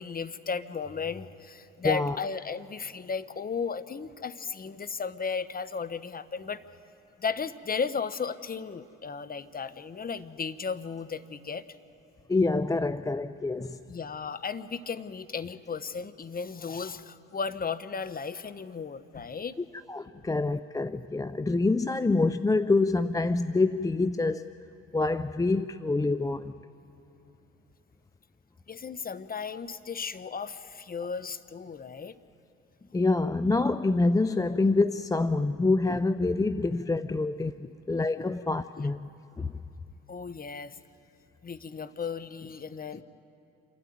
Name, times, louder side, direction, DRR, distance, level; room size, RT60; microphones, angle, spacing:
voice 1, 0.0-6.6 7.2-11.6 13.9-19.6 20.2-20.3 28.7-32.2 37.6-37.7 38.2-38.3 38.8-38.9 40.1-40.8 41.4-43.0, left 5 dB, 25° left, 13 dB, 1.0 m, -35 dB
voice 2, 1.8-2.1 12.3-13.8 19.9-24.4 24.9-26.5 32.9-37.5 37.9-39.1 39.4-39.5, left 3 dB, 10° left, 15 dB, 0.5 m, -26 dB
27.0 x 12.5 x 9.4 m, 2.9 s
hypercardioid pair, 60°, 33 cm